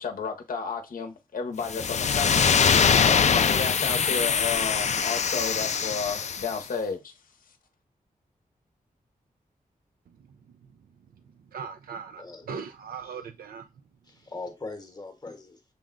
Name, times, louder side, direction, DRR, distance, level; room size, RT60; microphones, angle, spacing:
voice 1, 0.0-2.4 3.1-7.1, left 5 dB, 70° left, 0.7 m, -32 dB
sound 1, 1.6-6.6, left 6 dB, 50° left, 0.4 m, -23 dB
voice 2, 11.5-13.7, right 6 dB, 80° right, 0.4 m, -39 dB
voice 3, 12.2-12.5 13.0-13.1 14.0-15.6, left 3 dB, 25° left, 0.9 m, -40 dB
6.4 x 2.2 x 3.6 m
wide cardioid pair, 120°, 15 cm